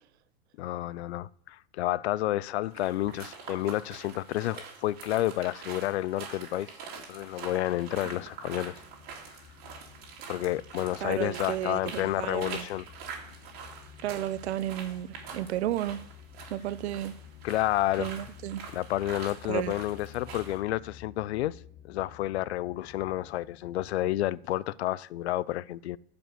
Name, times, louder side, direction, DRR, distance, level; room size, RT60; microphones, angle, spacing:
voice 1, 0.6-6.7 7.1-8.8 10.3-12.9 17.4-18.1 18.7-21.6 21.8-26.0, left 14 dB, 85° left, 0.5 m, -30 dB
sound 1, 2.7-20.6, right 6 dB, 30° right, 2.5 m, -45 dB
sound 2, 7.6-24.4, left 9 dB, 25° left, 1.1 m, -52 dB
voice 2, 11.0-12.7 14.0-16.0 16.5-17.1 18.0-18.6 19.5-19.8, right 12 dB, 85° right, 0.7 m, -33 dB
9.3 x 5.3 x 7.7 m
supercardioid pair, 160°, 32 cm